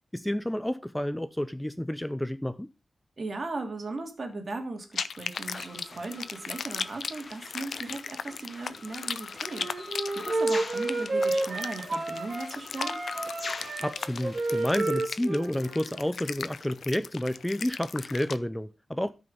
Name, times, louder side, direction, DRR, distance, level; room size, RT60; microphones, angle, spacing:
voice 1, 0.1-2.7 13.8-19.1, left 1 dB, 5° left, 0.4 m, -30 dB
voice 2, 3.2-13.0, right 3 dB, 45° right, 2.5 m, -38 dB
sound 1, 4.9-18.4, left 6 dB, 90° left, 0.6 m, -37 dB
sound 2, 5.3-14.7, left 3 dB, 50° left, 1.5 m, -43 dB
Wind instrument woodwind instrument, 9.4-12.5 12.8-16.1, right 2 dB, 65° right, 2.9 m, -31 dB
13.0 x 5.5 x 5.5 m
wide cardioid pair, 135°, 0 cm